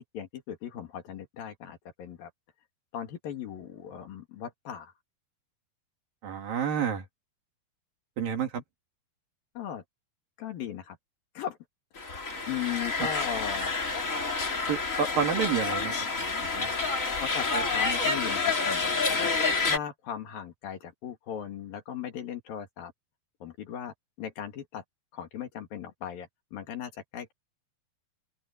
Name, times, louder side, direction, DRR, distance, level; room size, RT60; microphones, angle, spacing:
voice 1, 0.0-2.3 2.9-4.9 9.6-9.8 10.4-11.0 11.4-11.6 12.5-13.7 17.2-19.3 19.7-22.9 23.4-24.8 25.1-27.3, left 9 dB, 65° left, 3.8 m, -38 dB
voice 2, 6.2-7.0 8.2-8.6 14.7-16.7, right 7 dB, 60° right, 4.1 m, -30 dB
sound 1, 12.0-19.8, left 4 dB, 25° left, 2.3 m, -28 dB
open air
omnidirectional pair, 4.7 m